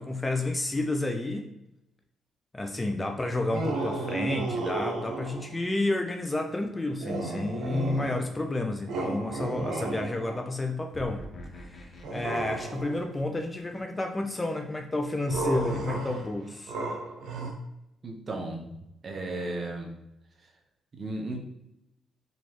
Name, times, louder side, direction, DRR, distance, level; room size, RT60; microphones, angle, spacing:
voice 1, 0.0-1.5 2.5-11.2 11.6-16.8, left 2 dB, 20° left, 4 dB, 0.5 m, -30 dB
sound 1, 3.5-5.6 7.0-8.4 8.9-10.5 12.0-13.1 15.3-17.5, right 2 dB, 80° right, 0.9 m, -33 dB
sound 2, 10.9-13.8 15.3-15.8, left 1 dB, 40° left, 0.9 m, -45 dB
voice 2, 18.0-18.7 19.0-20.0 20.9-21.4, right 2 dB, 40° right, 1 dB, 1.0 m, -34 dB
4.2 x 3.1 x 3.0 m, 0.86 s
cardioid pair, 90°, 0 cm